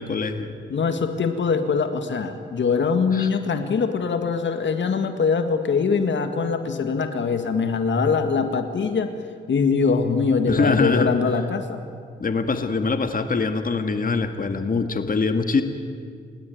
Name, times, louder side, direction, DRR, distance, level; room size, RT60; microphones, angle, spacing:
voice 1, 0.0-0.5 3.1-3.3 10.5-11.1 12.2-15.6, left 4 dB, 45° left, 7 dB, 1.9 m, -23 dB
voice 2, 0.7-9.1 9.5-11.8, left 5 dB, 65° left, 8 dB, 2.0 m, -22 dB
30.0 x 17.5 x 9.4 m, 2.2 s
cardioid pair, 60°, 20 cm